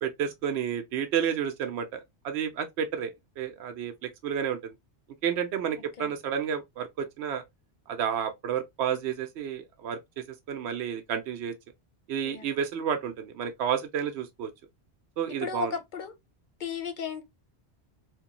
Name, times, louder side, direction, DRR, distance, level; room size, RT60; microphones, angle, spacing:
voice 1, 0.0-4.7 5.2-7.4 7.9-11.5 12.1-14.5 15.2-15.7, right 8 dB, 80° right, 0.9 m, -31 dB
voice 2, 15.4-16.1 16.6-17.2, left 7 dB, 55° left, 0.8 m, -34 dB
3.0 x 2.2 x 2.8 m
omnidirectional pair, 1.1 m